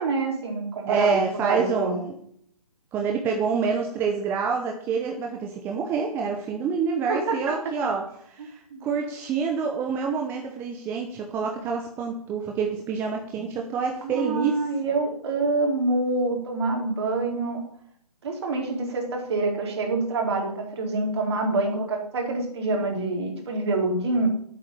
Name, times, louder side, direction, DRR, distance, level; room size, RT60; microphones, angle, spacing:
voice 1, 0.0-2.0 7.1-7.7 8.7-8.8 14.0-17.6 18.2-24.3, right 3 dB, 45° right, 2 dB, 4.0 m, -26 dB
voice 2, 0.8-2.1 2.9-8.1 8.3-14.6, right 5 dB, 10° right, 2 dB, 0.9 m, -27 dB
10.5 x 8.5 x 8.8 m, 0.66 s
hypercardioid pair, 155°, 20 cm